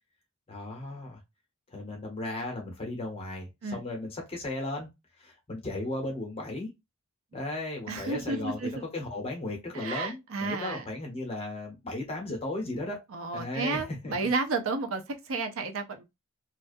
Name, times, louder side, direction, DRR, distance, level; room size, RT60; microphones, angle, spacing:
voice 1, 0.5-1.2 1.7-4.9 5.2-6.7 7.3-13.0 13.3-14.1, left 2 dB, 30° left, 0.9 m, -36 dB
voice 2, 7.9-8.8 9.7-10.8 13.1-16.0, right 3 dB, 70° right, 0.5 m, -32 dB
2.4 x 2.2 x 2.5 m
head